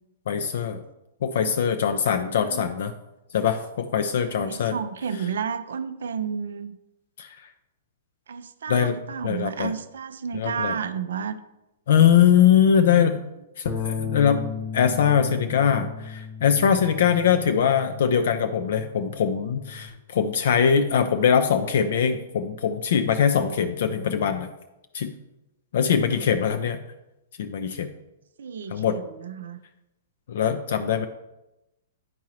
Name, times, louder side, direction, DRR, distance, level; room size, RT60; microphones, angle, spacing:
voice 1, 0.3-0.8 1.2-2.9 3.3-4.8 7.2-7.4 8.7-9.0 9.2-9.7 10.3-10.8 11.9-13.3 13.6-14.5 14.7-24.5 24.9-25.1 25.7-26.8 27.4-27.9 28.7-29.0 30.3-31.1, left 8 dB, 55° left, 8 dB, 0.4 m, -22 dB
voice 2, 2.2-2.7 4.3-6.8 8.3-11.4 26.1-26.3 28.4-29.6, right 6 dB, 60° right, 12 dB, 0.4 m, -32 dB
Bass guitar, 13.7-19.9, left 6 dB, 35° left, 1.1 m, -35 dB
10.5 x 4.5 x 3.0 m, 0.95 s
figure-of-eight pair, 110°, 0 cm